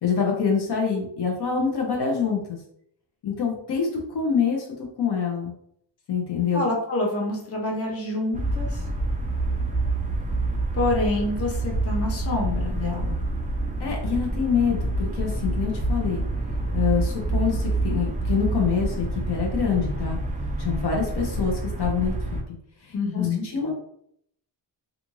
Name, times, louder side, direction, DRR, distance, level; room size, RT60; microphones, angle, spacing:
voice 1, 0.0-2.6 3.2-4.7 5.0-5.5 6.1-6.6 13.8-16.2 16.7-20.2 20.6-22.1 22.8-23.3 23.5-23.7, left 6 dB, 60° left, 0 dB, 0.8 m, -25 dB
voice 2, 6.5-8.8 10.7-13.2 22.9-23.5, left 2 dB, 30° left, -1 dB, 0.8 m, -27 dB
sound 1, 8.3-22.4, right 2 dB, 20° right, 0.4 m, -27 dB
2.5 x 2.4 x 3.0 m, 0.69 s
cardioid pair, 95°, 44 cm